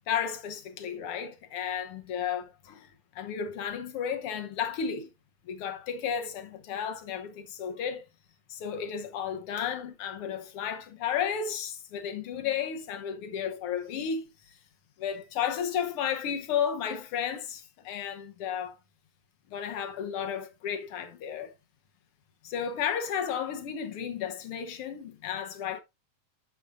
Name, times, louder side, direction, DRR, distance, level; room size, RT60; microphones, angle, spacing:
voice 1, 0.1-5.1 5.5-8.0 8.5-14.2 15.0-18.7 19.5-21.5 22.4-25.8, left 8 dB, 65° left, 1.5 m, -33 dB
11.5 x 6.4 x 2.5 m
omnidirectional pair, 3.5 m